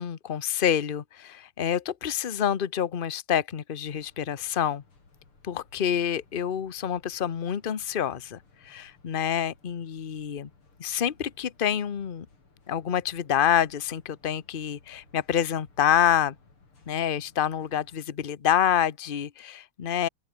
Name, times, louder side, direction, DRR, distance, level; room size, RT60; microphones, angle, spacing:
voice 1, 0.0-4.8 5.4-8.4 8.6-10.5 10.8-12.3 12.7-16.3 16.9-20.1, left 9 dB, 60° left, 0.5 m, -27 dB
sound 1, 3.8-18.0, left 4 dB, 85° left, 5.8 m, -59 dB
open air
omnidirectional pair, 2.3 m